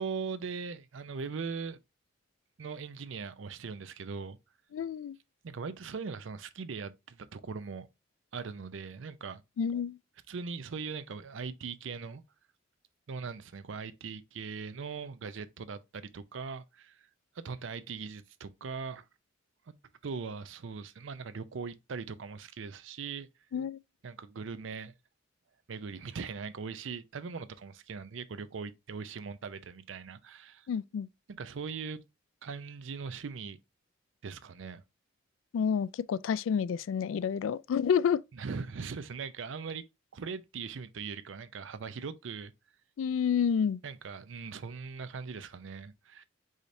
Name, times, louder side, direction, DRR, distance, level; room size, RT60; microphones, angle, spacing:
voice 1, 0.0-1.8 2.6-4.4 5.4-7.9 8.3-9.4 10.3-12.2 13.1-17.1 17.3-19.0 19.7-19.8 20.0-23.3 24.0-24.9 25.7-30.7 31.3-32.0 32.4-33.6 34.2-34.8 38.3-39.8 40.1-42.5 43.8-46.2, right 5 dB, 70° right, 0.5 m, -40 dB
voice 2, 4.7-5.1 9.6-10.0 23.5-23.8 30.7-31.1 35.5-38.2 43.0-43.8, left 7 dB, 80° left, 0.3 m, -29 dB
4.9 x 4.1 x 2.6 m
head